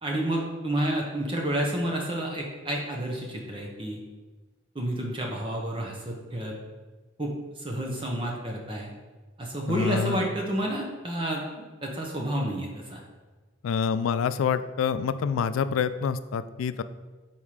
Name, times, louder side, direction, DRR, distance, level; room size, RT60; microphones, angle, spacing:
voice 1, 0.0-4.0 4.7-6.5 7.2-8.9 9.4-11.4 11.8-13.0, right 1 dB, 25° right, 0 dB, 0.8 m, -30 dB
voice 2, 9.7-10.2 13.6-16.8, left 6 dB, 85° left, 13 dB, 0.3 m, -27 dB
5.6 x 4.4 x 4.8 m, 1.3 s
head